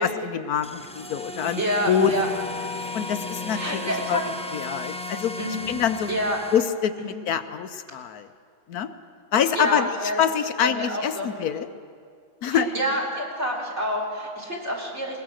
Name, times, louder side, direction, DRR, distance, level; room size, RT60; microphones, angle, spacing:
voice 1, 0.0-2.1 2.9-6.1 6.5-8.3 8.7-8.9 9.3-11.7 12.4-12.7, left 8 dB, 75° left, 9 dB, 1.3 m, -26 dB
sound 1, 0.6-6.6, left 2 dB, 5° left, 0.6 m, -35 dB
voice 2, 1.6-2.3 3.5-4.2 5.4-5.6 6.1-6.4 9.6-10.2 10.6-11.3 12.5-15.2, equal, 45° right, -4 dB, 4.1 m, -27 dB
21.0 x 19.5 x 6.4 m, 2.2 s
omnidirectional pair, 1.6 m